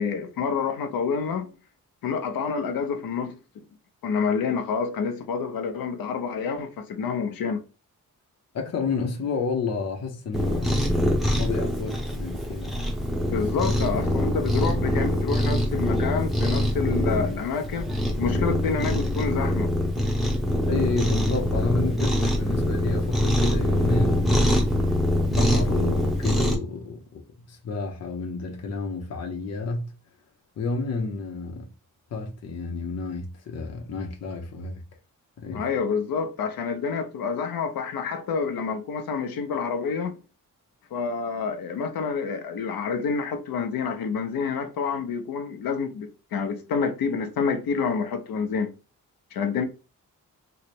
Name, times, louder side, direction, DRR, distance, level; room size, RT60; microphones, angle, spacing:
voice 1, 0.0-1.5 2.0-3.4 4.0-7.6 13.3-17.9 18.1-19.7 35.5-40.2 40.9-48.7 49.3-49.7, left 5 dB, 85° left, 0.7 m, -28 dB
voice 2, 8.5-10.9 11.4-12.8 20.3-24.5 25.2-29.9 30.6-31.7 32.1-34.8 35.4-35.7, left 3 dB, 50° left, 0.7 m, -30 dB
Cat, 10.3-26.6, left 1 dB, ahead, 0.8 m, -24 dB
3.2 x 2.0 x 4.2 m
wide cardioid pair, 160°, 34 cm